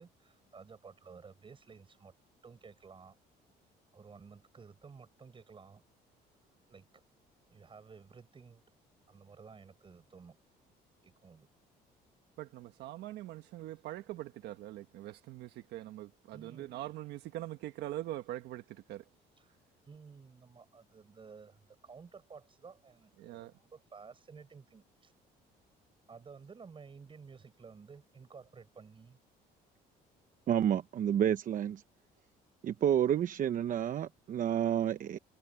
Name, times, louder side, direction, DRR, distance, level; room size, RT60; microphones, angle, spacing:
voice 1, 0.0-2.1 2.4-3.1 3.9-5.8 6.7-7.0 7.5-8.6 9.1-10.4 11.0-11.5 16.3-16.7 19.4-19.5 19.9-25.1 26.1-29.2, right 5 dB, 30° right, 6.9 m, -54 dB
voice 2, 12.4-19.1 23.2-23.6, right 14 dB, 80° right, 1.4 m, -43 dB
voice 3, 30.5-31.8 32.6-35.2, right 10 dB, 50° right, 0.9 m, -30 dB
cardioid pair, 110°, 17 cm